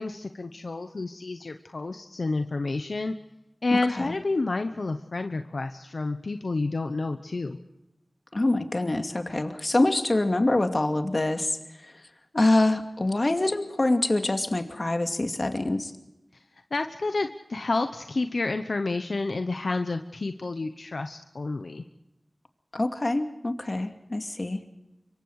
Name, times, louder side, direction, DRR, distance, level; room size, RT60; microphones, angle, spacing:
voice 1, 0.0-3.1 3.6-7.6 16.7-21.8, left 3 dB, 80° left, 7 dB, 1.0 m, -29 dB
voice 2, 3.7-4.2 8.3-11.6 12.3-15.9 22.7-24.6, left 2 dB, 50° left, 6 dB, 2.4 m, -25 dB
25.5 x 23.5 x 4.8 m, 0.92 s
wide cardioid pair, 40°, 0 cm